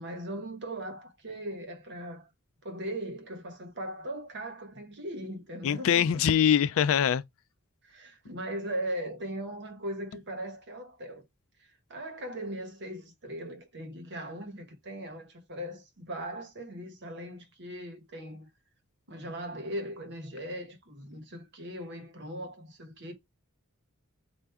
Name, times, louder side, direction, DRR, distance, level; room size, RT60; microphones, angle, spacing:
voice 1, 0.0-2.3 2.6-6.2 7.8-11.3 11.6-18.5 19.1-23.1, right 1 dB, 50° right, 1.2 m, -39 dB
voice 2, 5.6-7.2, left 8 dB, 65° left, 0.3 m, -23 dB
4.6 x 2.5 x 3.4 m
head